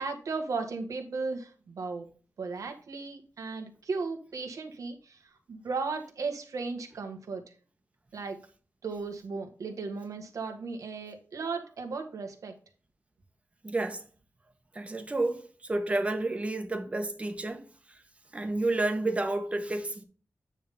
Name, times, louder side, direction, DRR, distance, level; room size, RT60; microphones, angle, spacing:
voice 1, 0.0-2.1 2.4-7.4 8.1-8.4 8.8-12.5, right 4 dB, 90° right, 1.6 m, -36 dB
voice 2, 13.6-14.0 14.7-18.0 18.3-20.0, right 2 dB, 25° right, 1.1 m, -30 dB
9.2 x 3.7 x 5.3 m
wide cardioid pair, 180°, 6 cm